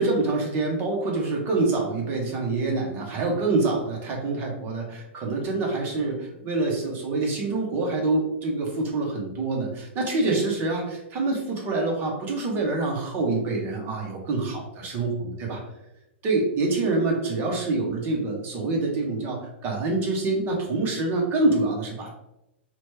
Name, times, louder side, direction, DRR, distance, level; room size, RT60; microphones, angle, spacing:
voice 1, 0.0-15.1 15.4-15.6 16.2-22.1, right 3 dB, 30° right, 0 dB, 0.8 m, -26 dB
2.9 x 2.2 x 3.1 m, 0.87 s
hypercardioid pair, 130°, 6 cm